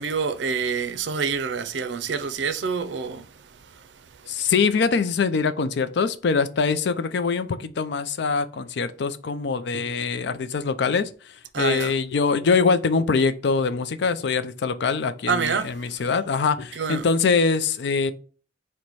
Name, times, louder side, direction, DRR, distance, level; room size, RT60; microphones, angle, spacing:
voice 1, 0.0-3.3 11.5-11.9 15.3-15.7 16.8-17.1, right 5 dB, 70° right, 0.5 m, -26 dB
voice 2, 4.3-18.1, left 5 dB, 65° left, 0.4 m, -23 dB
4.0 x 2.2 x 4.5 m
head